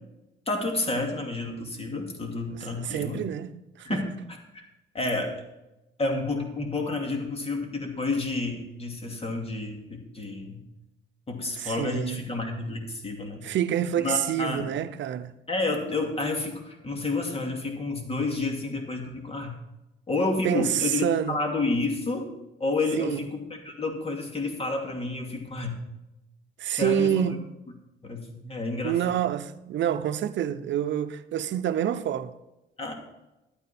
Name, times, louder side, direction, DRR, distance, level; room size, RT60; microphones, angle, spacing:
voice 1, 0.5-3.3 3.8-4.6 4.9-5.4 6.0-10.6 11.3-13.4 14.0-14.7 15.5-19.6 20.1-22.3 22.6-25.8 26.7-27.4 28.0-29.0 32.8-32.9, left 3 dB, 30° left, 2.7 m, -30 dB
voice 2, 2.5-4.0 11.6-12.2 13.4-15.3 20.4-21.4 23.0-23.2 26.6-27.4 28.8-32.3, right 10 dB, 70° right, 0.7 m, -27 dB
12.0 x 9.4 x 4.3 m
cardioid pair, 90°, 20 cm